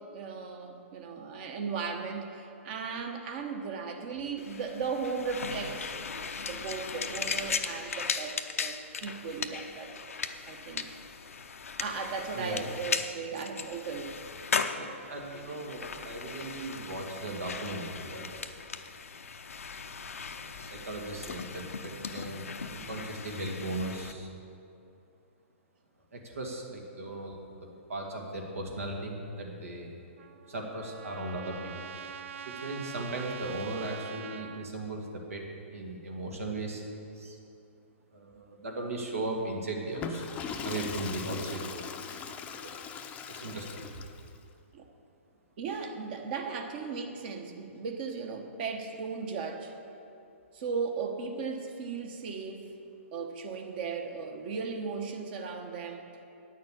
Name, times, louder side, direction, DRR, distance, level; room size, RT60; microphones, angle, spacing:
voice 1, 0.0-10.1 10.5-10.9 11.8-14.2 44.7-44.9 45.6-49.7 50.5-52.7 53.1-56.0, right 5 dB, 45° right, 4 dB, 1.2 m, -36 dB
sound 1, 4.4-24.1, left 5 dB, 90° left, 0.6 m, -37 dB
voice 2, 14.8-18.3 20.3-24.3 26.1-29.9 30.5-31.9 32.4-35.5 35.7-36.8 37.1-37.4 38.1-40.2 40.6-41.9 42.5-42.8 43.3-44.0, right 2 dB, 85° right, 0 dB, 2.1 m, -37 dB
Trumpet, 30.2-34.7, right 7 dB, 65° right, 0.4 m, -44 dB
Water / Toilet flush, 39.9-44.4, left 6 dB, 20° left, 0.6 m, -40 dB
9.1 x 6.5 x 8.5 m, 2.7 s
hypercardioid pair, 140°, 7 cm